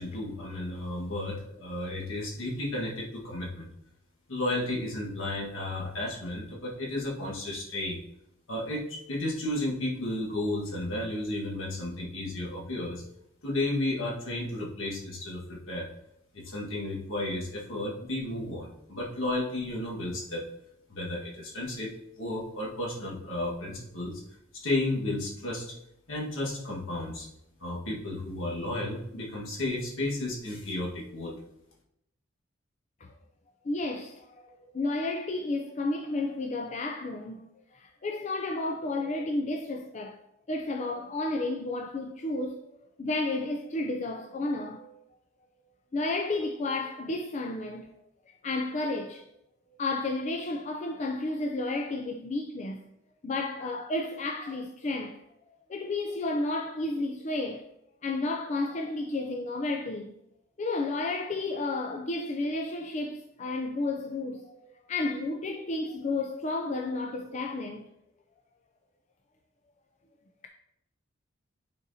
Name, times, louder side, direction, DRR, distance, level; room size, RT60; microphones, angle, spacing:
voice 1, 0.0-3.7 4.3-8.0 8.5-13.0 13.4-15.9 16.3-20.5 20.9-24.2 24.5-25.7 26.1-27.3 27.6-31.4, left 1 dB, 70° left, 1.5 m, -33 dB
voice 2, 33.6-40.2 40.5-42.6 43.0-45.0 45.9-48.0 48.4-49.3 49.8-52.8 53.2-55.2 55.7-57.7 58.0-60.1 60.6-64.6 64.9-67.9, left 2 dB, 35° left, 0.4 m, -32 dB
9.4 x 4.2 x 2.7 m
head